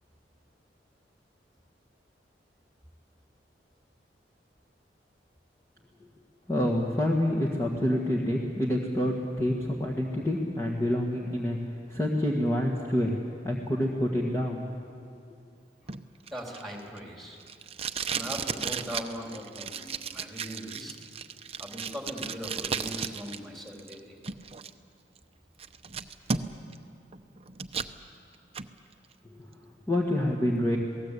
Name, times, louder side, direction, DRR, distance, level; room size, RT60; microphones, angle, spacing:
voice 1, 6.5-11.6 11.9-13.1 13.4-14.6 29.3-29.5 29.9-30.8, left 1 dB, 20° left, -2 dB, 1.8 m, -27 dB
Packing tape duct tape, 15.9-23.4 23.7-24.7 25.2-25.3 25.6-26.8 27.1-27.9 28.3-28.7, right 6 dB, 35° right, 0.8 m, -35 dB
voice 2, 16.3-17.4 18.1-21.0 21.6-24.2, equal, ahead, 0 dB, 3.8 m, -40 dB
27.5 x 18.0 x 8.5 m, 2.4 s
head